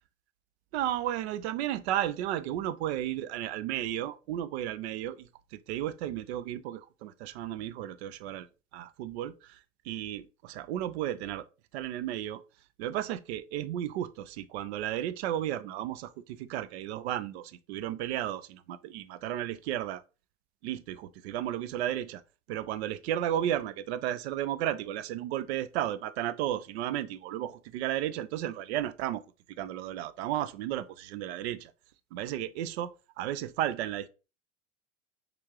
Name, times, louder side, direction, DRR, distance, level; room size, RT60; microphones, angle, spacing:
voice 1, 0.7-8.5 8.7-11.5 11.7-12.4 12.8-20.0 20.6-22.2 22.5-29.2 29.6-31.7 32.1-34.1, right 12 dB, 60° right, 0.5 m, -33 dB
6.4 x 2.5 x 2.9 m
hypercardioid pair, 85°, 38 cm